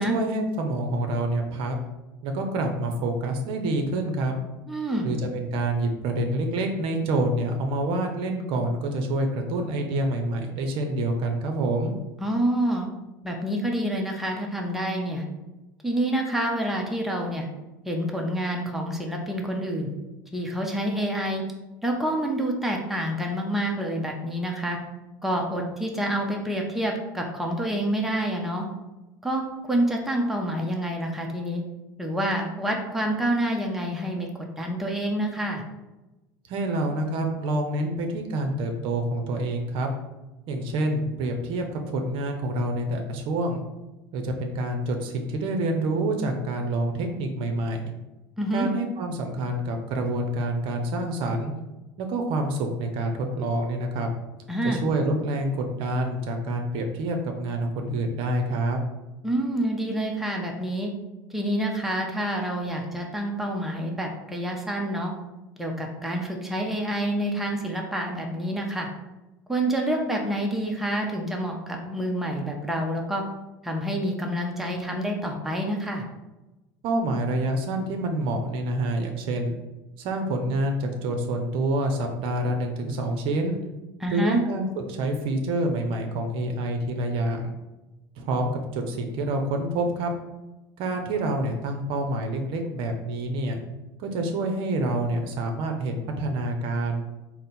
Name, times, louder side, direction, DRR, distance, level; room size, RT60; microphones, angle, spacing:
voice 1, 0.0-1.8 2.2-4.3 5.0-11.9 36.5-39.9 40.5-43.6 44.1-47.8 48.5-51.5 52.0-54.1 54.6-58.8 76.8-79.6 80.0-83.6 84.1-87.5 88.2-90.1 90.8-93.6 94.0-97.0, right 1 dB, 55° right, 4 dB, 0.6 m, -27 dB
voice 2, 4.7-5.1 12.2-12.9 13.2-15.2 15.8-17.5 17.8-19.9 20.3-21.4 21.8-24.8 25.2-28.7 29.2-29.4 29.7-31.6 32.0-34.3 34.6-35.6 48.4-48.7 54.5-54.8 59.2-60.9 61.3-65.1 65.6-68.9 69.5-73.2 73.6-76.0 84.0-84.4, right 1 dB, ahead, 0 dB, 0.7 m, -27 dB
3.7 x 2.1 x 4.3 m, 1.0 s
hypercardioid pair, 80°, 11 cm